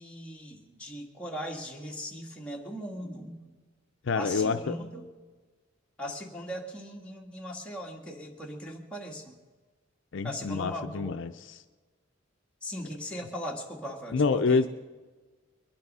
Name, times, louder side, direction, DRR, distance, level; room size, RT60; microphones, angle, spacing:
voice 1, 0.0-3.4 4.1-5.1 6.0-9.3 10.2-11.1 12.6-14.6, equal, 5° left, -2 dB, 1.9 m, -39 dB
voice 2, 4.0-4.7 10.1-11.6 14.1-14.7, left 4 dB, 65° left, 9 dB, 0.5 m, -27 dB
22.5 x 10.5 x 5.5 m, 1.4 s
head